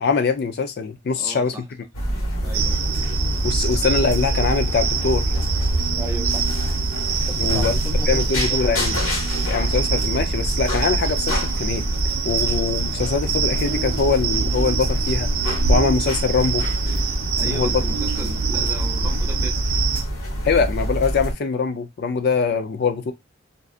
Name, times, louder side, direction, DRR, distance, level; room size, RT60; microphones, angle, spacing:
voice 1, 0.0-1.5 3.4-5.2 7.4-7.7 8.1-9.0 9.5-11.8 12.2-15.3 15.7-16.7 17.5-17.8 20.4-23.1, left 5 dB, 50° left, 0.4 m, -22 dB
voice 2, 1.2-1.6 2.4-2.8 5.9-6.5 7.2-8.6 17.4-19.6, right 1 dB, 15° right, 0.6 m, -35 dB
sound 1, 1.9-21.3, equal, 90° left, 1.3 m, -26 dB
sound 2, 2.5-20.0, right 4 dB, 90° right, 0.4 m, -25 dB
2.6 x 2.3 x 2.3 m
head